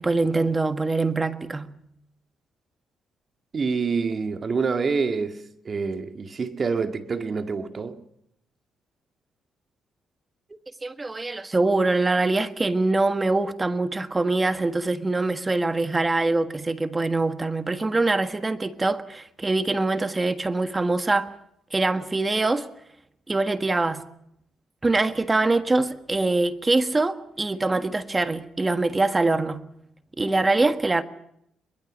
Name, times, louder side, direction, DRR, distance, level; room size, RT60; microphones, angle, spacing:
voice 1, 0.0-1.7 10.8-21.3 21.7-22.7 23.3-24.0 24.8-29.7 30.2-31.0, right 2 dB, 20° right, 1.5 m, -24 dB
voice 2, 3.5-8.0, right 5 dB, 40° right, 2.0 m, -27 dB
23.0 x 21.0 x 6.4 m
cardioid pair, 90°, 0 cm